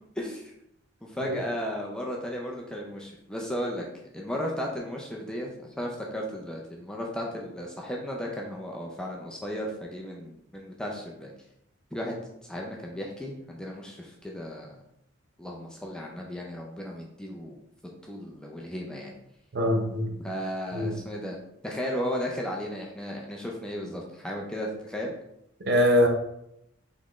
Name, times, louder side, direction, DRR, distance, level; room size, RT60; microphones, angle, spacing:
voice 1, 0.2-0.5 1.0-3.8 4.1-5.5 5.8-11.3 11.9-12.1 12.5-14.7 15.4-17.6 18.1-19.1 20.2-21.4 21.6-25.1, equal, 5° left, -2 dB, 0.4 m, -35 dB
voice 2, 19.5-20.1 20.7-20.9 25.6-26.1, equal, 50° right, 2 dB, 0.7 m, -23 dB
4.0 x 3.6 x 3.1 m, 0.79 s
head